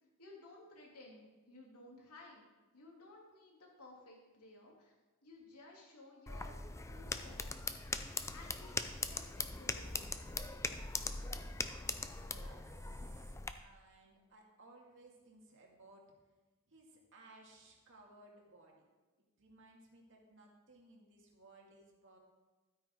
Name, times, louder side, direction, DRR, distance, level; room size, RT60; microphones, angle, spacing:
voice 1, 0.2-2.4 2.7-4.9 5.2-7.5 7.8-10.3, left 2 dB, 90° left, -2 dB, 2.9 m, -57 dB
sound 1, 6.3-13.5, left 3 dB, 15° left, 0.4 m, -41 dB
voice 2, 12.0-16.1 16.7-18.9 19.2-22.2, right 2 dB, 60° right, -1 dB, 2.2 m, -61 dB
12.5 x 8.9 x 3.7 m, 1.2 s
head